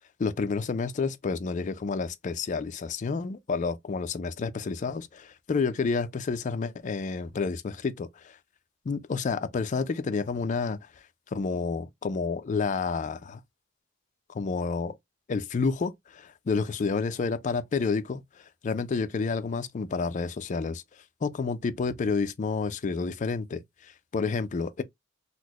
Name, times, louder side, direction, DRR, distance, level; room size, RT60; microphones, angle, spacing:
voice 1, 0.2-8.4 8.9-10.8 11.3-13.4 14.3-14.9 15.3-18.2 18.6-20.8 21.2-24.8, left 4 dB, 40° left, 0.4 m, -29 dB
4.0 x 2.1 x 2.9 m
head